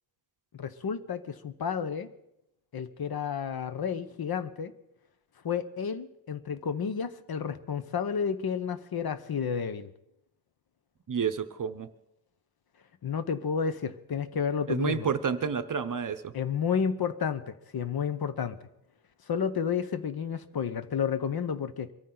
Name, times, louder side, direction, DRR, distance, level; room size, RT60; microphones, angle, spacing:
voice 1, 0.5-2.1 2.7-4.7 5.4-9.9 13.0-15.1 16.3-18.7 19.3-21.9, left 7 dB, 50° left, 12 dB, 0.8 m, -31 dB
voice 2, 11.1-11.9 14.7-16.3, right 6 dB, 45° right, 11 dB, 0.7 m, -30 dB
23.5 x 13.5 x 3.9 m, 0.83 s
wide cardioid pair, 150°, 46 cm